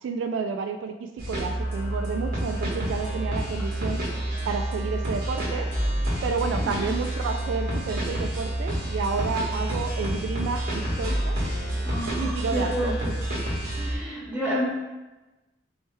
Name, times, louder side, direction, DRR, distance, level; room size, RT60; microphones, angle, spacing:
voice 1, 0.0-4.0 4.5-5.7 6.2-11.4 12.0-13.0, right 5 dB, 80° right, 7 dB, 0.3 m, -30 dB
sound 1, 1.2-14.0, right 1 dB, 55° right, 1.3 m, -28 dB
voice 2, 11.8-13.1 13.8-14.6, equal, 10° right, -9 dB, 1.3 m, -29 dB
4.3 x 3.2 x 3.3 m, 1.1 s
head